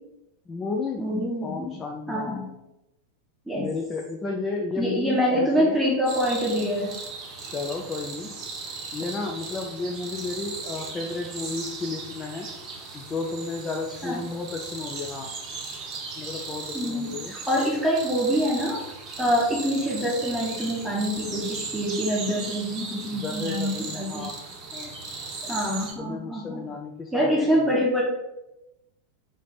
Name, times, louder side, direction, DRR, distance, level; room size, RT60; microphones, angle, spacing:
voice 1, 0.5-1.0 1.4-2.6 3.5-5.8 7.5-8.4 8.9-12.5 12.9-15.3 16.2-17.3 23.1-24.4 24.7-24.9 26.0-27.8, left 3 dB, 20° left, 1 dB, 0.4 m, -33 dB
voice 2, 1.0-1.8 2.1-2.5 3.5-3.7 4.7-6.9 14.0-14.2 16.7-18.8 19.2-24.3 25.4-26.6 27.1-28.0, equal, ahead, -5 dB, 1.4 m, -25 dB
sound 1, 6.0-25.9, right 4 dB, 35° right, 0.9 m, -37 dB
3.7 x 3.2 x 4.0 m, 0.93 s
figure-of-eight pair, 90°, 0 cm